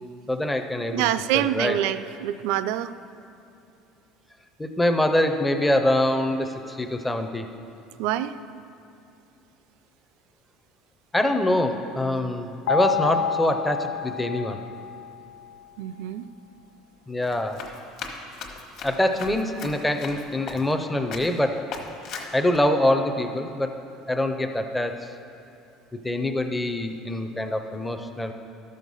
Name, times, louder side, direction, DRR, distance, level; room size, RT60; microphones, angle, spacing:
voice 1, 0.3-1.1 1.3-1.8 4.6-7.5 11.1-14.6 17.1-17.6 18.8-21.6 22.3-23.8 24.1-25.0 26.0-28.3, left 1 dB, 5° left, 6 dB, 0.5 m, -24 dB
voice 2, 0.9-2.9 8.0-8.3 15.8-16.3, right 12 dB, 70° right, 14 dB, 0.3 m, -26 dB
sound 1, 12.7-15.6, left 7 dB, 75° left, 0.7 m, -29 dB
Run, 17.2-20.8 21.1-21.4 21.7-22.6, left 5 dB, 45° left, 1.1 m, -38 dB
13.0 x 6.4 x 5.4 m, 2.7 s
cardioid pair, 180°, 0 cm